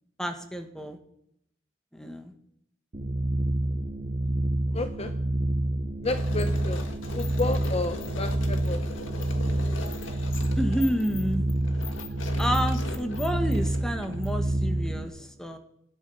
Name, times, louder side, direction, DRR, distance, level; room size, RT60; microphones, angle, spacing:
voice 1, 0.2-1.0 1.9-2.3 6.3-6.5 10.6-11.5 12.4-15.6, equal, 5° left, 6 dB, 1.7 m, -30 dB
sound 1, 2.9-15.1, right 1 dB, 35° right, 1.1 m, -28 dB
voice 2, 4.7-5.2 6.0-8.9, left 3 dB, 35° left, 9 dB, 0.8 m, -32 dB
sound 2, 6.0-14.6, left 3 dB, 90° left, 2.0 m, -40 dB
18.5 x 13.0 x 5.7 m, 0.77 s
head